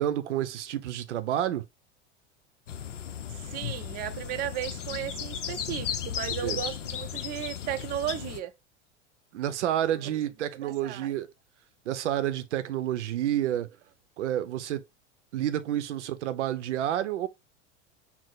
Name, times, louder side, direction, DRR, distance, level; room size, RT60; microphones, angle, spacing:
voice 1, 0.0-1.6 6.4-6.6 9.3-11.3 11.9-13.7 14.2-14.8 15.3-17.3, right 11 dB, 75° right, 0.6 m, -29 dB
sound 1, 2.7-8.4, left 9 dB, 85° left, 0.5 m, -35 dB
voice 2, 3.5-8.5 10.6-11.1, right 11 dB, 25° right, 0.4 m, -35 dB
4.5 x 2.0 x 3.8 m
hypercardioid pair, 85°, 36 cm